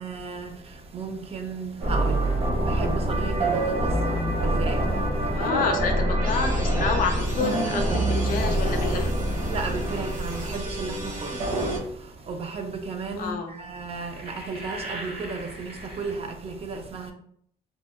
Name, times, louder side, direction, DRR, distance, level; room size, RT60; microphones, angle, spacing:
voice 1, 0.0-5.5 7.7-8.0 9.5-17.1, right 4 dB, 35° right, 0.4 m, -35 dB
sound 1, 1.8-11.8, right 1 dB, 55° right, 0.8 m, -25 dB
voice 2, 5.3-9.3 13.2-13.6, left 5 dB, 55° left, 0.4 m, -29 dB
sound 2, 10.9-11.2 12.1-12.3 14.0-16.1, right 1 dB, 75° right, 1.3 m, -39 dB
2.8 x 2.0 x 2.3 m
cardioid pair, 110°, 17 cm